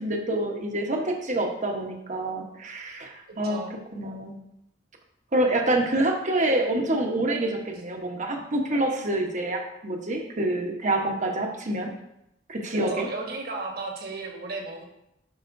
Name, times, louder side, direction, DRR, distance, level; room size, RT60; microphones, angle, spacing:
voice 1, 0.0-3.6 3.9-4.4 5.3-11.9 12.5-13.1, right 1 dB, 40° right, 2 dB, 1.1 m, -27 dB
voice 2, 3.3-3.7 12.7-14.8, right 3 dB, 55° right, 1 dB, 1.5 m, -34 dB
11.5 x 5.6 x 2.7 m, 0.82 s
head